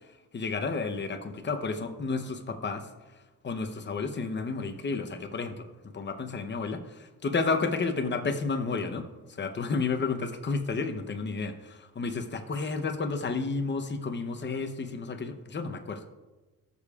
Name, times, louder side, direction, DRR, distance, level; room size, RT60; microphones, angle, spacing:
voice 1, 0.3-2.9 3.4-16.1, left 4 dB, 30° left, 7 dB, 0.8 m, -31 dB
18.5 x 6.8 x 2.4 m, 1.2 s
cardioid pair, 130°, 38 cm